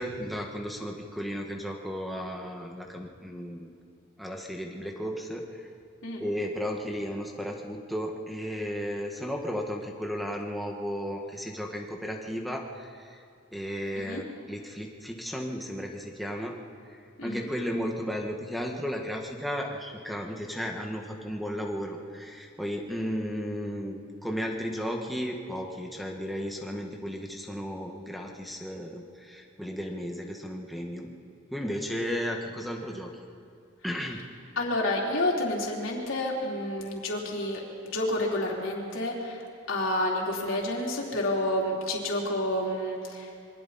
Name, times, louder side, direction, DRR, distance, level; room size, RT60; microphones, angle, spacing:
voice 1, 0.0-3.7 4.2-5.7 6.2-13.2 13.5-16.5 17.2-31.1 31.5-33.1 33.8-34.2, equal, ahead, 0 dB, 1.6 m, -34 dB
voice 2, 34.6-39.4 39.7-43.4, left 1 dB, 75° left, -2 dB, 3.8 m, -29 dB
27.5 x 23.5 x 4.3 m, 2.4 s
head